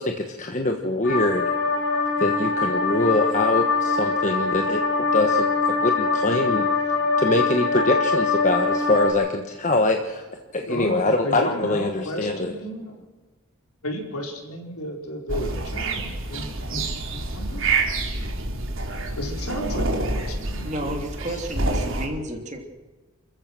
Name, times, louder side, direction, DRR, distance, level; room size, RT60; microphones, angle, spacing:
voice 1, 0.0-1.5 2.2-12.5 21.3-21.4, left 2 dB, 35° left, 4 dB, 1.3 m, -24 dB
sound 1, 1.0-9.1, left 4 dB, 55° left, 4.4 m, -23 dB
voice 2, 10.7-12.9 13.8-16.8 17.3-17.6 19.2-20.9 21.7-21.8, left 1 dB, 85° left, 2 dB, 4.8 m, -33 dB
sound 2, 15.3-22.1, right 3 dB, 60° right, 3.5 m, -27 dB
voice 3, 20.6-22.6, right 1 dB, 30° right, 3 dB, 3.0 m, -31 dB
29.0 x 14.5 x 6.2 m, 1.3 s
head